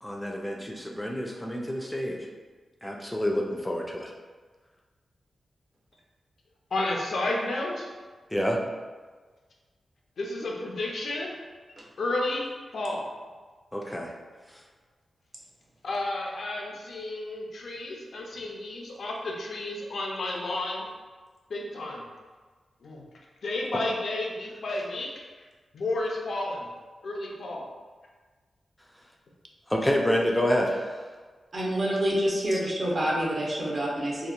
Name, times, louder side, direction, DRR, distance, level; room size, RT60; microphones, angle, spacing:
voice 1, 0.0-2.2 2.8-4.1 8.3-8.6 13.7-14.1 29.7-31.1 32.5-32.6, equal, 10° left, 0 dB, 0.3 m, -28 dB
voice 2, 6.7-7.9 10.2-11.4 12.0-12.5 12.7-13.1 15.8-20.9 21.5-22.0 22.8-23.0 23.4-25.2 25.7-26.7 27.0-27.7, left 2 dB, 70° left, -1 dB, 0.4 m, -31 dB
voice 3, 31.5-34.3, equal, 50° right, -4 dB, 0.6 m, -27 dB
2.8 x 2.1 x 2.3 m, 1.4 s
wide cardioid pair, 95°, 0 cm